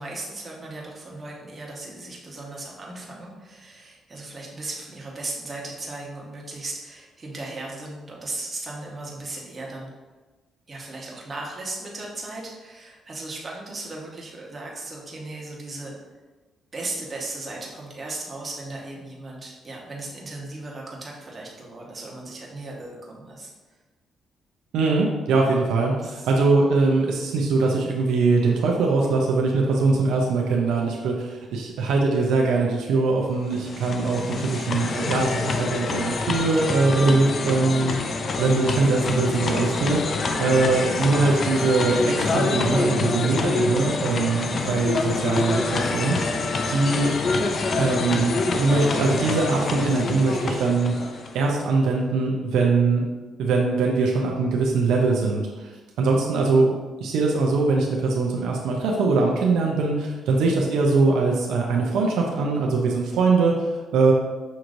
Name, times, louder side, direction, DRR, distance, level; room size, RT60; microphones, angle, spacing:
voice 1, 0.0-9.9 10.7-16.0 16.7-23.5 25.5-25.6 26.0-26.3, right 2 dB, 30° right, -3 dB, 1.2 m, -36 dB
voice 2, 24.7-38.0 38.4-46.4 46.7-47.1 47.8-50.9 51.3-53.0 53.4-55.7 56.0-64.1, right 3 dB, 85° right, -1 dB, 0.6 m, -22 dB
sound 1, 33.4-51.4, left 3 dB, 50° left, 0.4 m, -26 dB
6.3 x 3.0 x 2.6 m, 1.3 s
cardioid pair, 90°, 0 cm